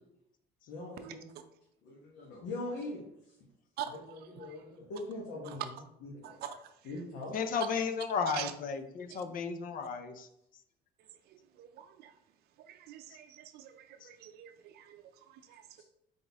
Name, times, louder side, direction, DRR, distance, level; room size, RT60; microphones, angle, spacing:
voice 1, 0.7-1.3 1.8-3.0 3.9-5.7 6.0-6.4 6.8-7.4 9.1-9.2, left 2 dB, 90° left, -4 dB, 1.2 m, -42 dB
voice 2, 3.8-4.6 5.5-5.6 6.2-6.7 8.3-8.5 9.1-9.2 11.3-12.1 12.6-15.6, right 10 dB, 70° right, 7 dB, 0.5 m, -45 dB
voice 3, 7.3-10.1, left 6 dB, 55° left, 8 dB, 0.6 m, -33 dB
4.1 x 3.7 x 3.4 m, 0.79 s
cardioid pair, 110°, 17 cm